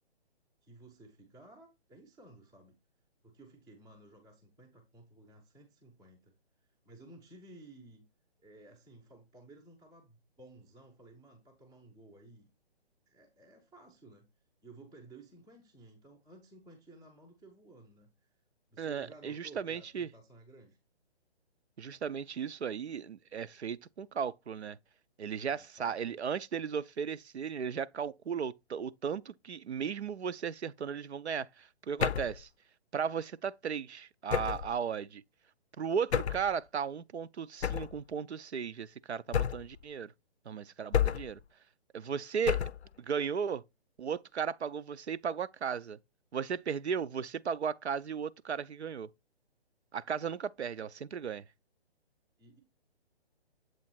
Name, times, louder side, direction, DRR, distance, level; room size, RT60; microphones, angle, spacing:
voice 1, 0.6-2.8 3.2-6.3 6.8-8.0 8.4-12.5 13.1-14.3 14.6-18.3 18.7-20.8 25.4-26.2 52.4-52.6, right 2 dB, 5° right, 0.4 m, -55 dB
voice 2, 18.8-20.1 21.8-24.8 25.2-32.5 32.9-35.2 35.8-40.1 40.5-41.4 41.9-42.7 43.0-43.6 44.0-46.0 46.3-49.1 49.9-51.4, right 7 dB, 90° right, 0.5 m, -36 dB
sound 1, 32.0-32.4 34.3-34.7 36.1-36.5 37.6-38.0 39.3-39.8 40.9-41.4 42.5-42.9, left 9 dB, 85° left, 0.5 m, -30 dB
7.5 x 2.9 x 4.3 m
figure-of-eight pair, 135°, 32 cm